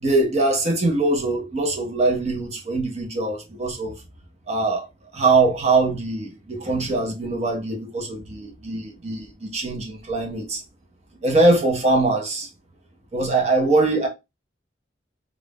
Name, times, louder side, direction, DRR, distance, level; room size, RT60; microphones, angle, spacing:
voice 1, 0.0-4.0 4.5-4.9 5.1-10.6 11.2-12.5 13.1-14.1, right 2 dB, 35° right, 0.6 m, -22 dB
2.4 x 2.0 x 3.3 m
head